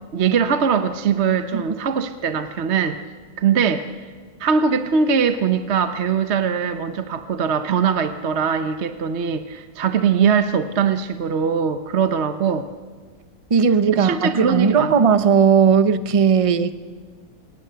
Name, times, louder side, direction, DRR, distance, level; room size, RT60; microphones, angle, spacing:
voice 1, 0.1-3.0 3.4-3.9 4.4-12.6 14.0-14.9, right 6 dB, 50° right, 9 dB, 1.0 m, -21 dB
voice 2, 13.5-16.7, right 6 dB, 35° right, 12 dB, 0.6 m, -17 dB
27.5 x 18.5 x 6.8 m, 1.5 s
omnidirectional pair, 1.7 m